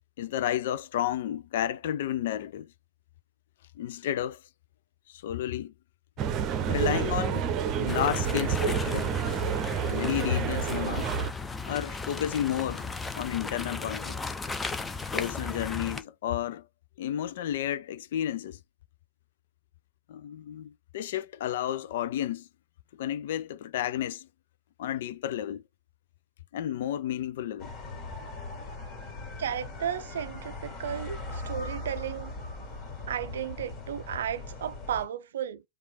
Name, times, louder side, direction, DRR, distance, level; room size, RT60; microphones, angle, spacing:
voice 1, 0.2-2.7 3.8-4.4 5.1-5.7 6.7-7.5 7.8-9.2 9.9-11.1 11.7-14.2 15.1-16.7 17.0-18.6 20.1-22.5 23.0-24.3 24.8-25.6 26.5-27.7, left 11 dB, 55° left, 0.4 m, -31 dB
sound 1, 6.2-11.3, right 8 dB, 35° right, 0.7 m, -29 dB
sound 2, 7.9-16.0, left 4 dB, 10° left, 0.6 m, -36 dB
sound 3, 27.6-35.1, left 2 dB, 40° left, 2.1 m, -40 dB
voice 2, 29.4-32.3 33.1-35.6, right 9 dB, 60° right, 0.4 m, -34 dB
5.0 x 2.4 x 4.3 m
figure-of-eight pair, 90°, 0 cm